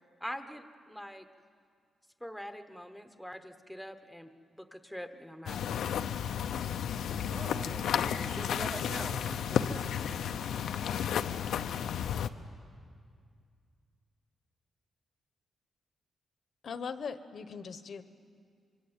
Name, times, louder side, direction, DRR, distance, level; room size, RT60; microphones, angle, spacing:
voice 1, 0.2-1.2 2.2-4.3 4.6-5.6, equal, ahead, 7 dB, 1.1 m, -43 dB
sound 1, 5.5-12.3, left 8 dB, 85° left, 0.8 m, -32 dB
voice 2, 7.3-10.4, right 3 dB, 30° right, 11 dB, 0.9 m, -45 dB
voice 3, 16.6-18.0, left 6 dB, 50° left, 11 dB, 1.1 m, -39 dB
25.5 x 24.0 x 9.0 m, 2.2 s
wide cardioid pair, 150°, 0 cm